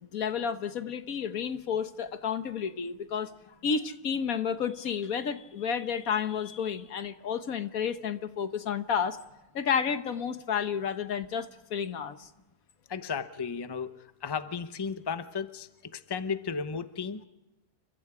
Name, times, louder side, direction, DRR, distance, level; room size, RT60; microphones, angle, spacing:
voice 1, 0.0-3.3 3.6-9.2 9.5-12.3, left 7 dB, 75° left, 10 dB, 1.6 m, -31 dB
voice 2, 12.9-13.9 14.2-17.2, left 6 dB, 20° left, 11 dB, 0.8 m, -34 dB
29.5 x 24.0 x 4.9 m, 0.99 s
omnidirectional pair, 1.5 m